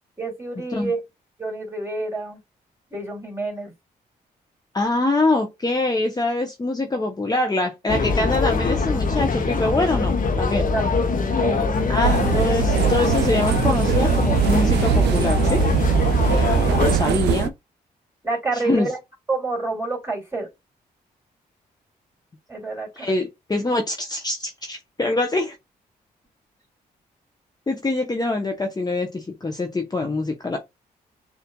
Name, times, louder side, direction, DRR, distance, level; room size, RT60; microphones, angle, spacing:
voice 1, 0.2-1.0 1.4-2.4 2.9-3.7 10.5-10.8 11.4-12.1 16.4-16.9 18.2-19.0 19.3-20.5 22.5-23.2, right 3 dB, 15° right, 2.7 m, -28 dB
voice 2, 4.7-10.6 11.9-15.6 16.3-17.5 18.5-18.9 22.9-25.6 27.7-30.6, left 2 dB, 25° left, 0.7 m, -24 dB
sound 1, 7.9-17.0, left 4 dB, 50° left, 0.9 m, -22 dB
sound 2, 12.0-17.5, right 10 dB, 80° right, 0.4 m, -21 dB
6.6 x 2.6 x 2.2 m
supercardioid pair, 55°, 17 cm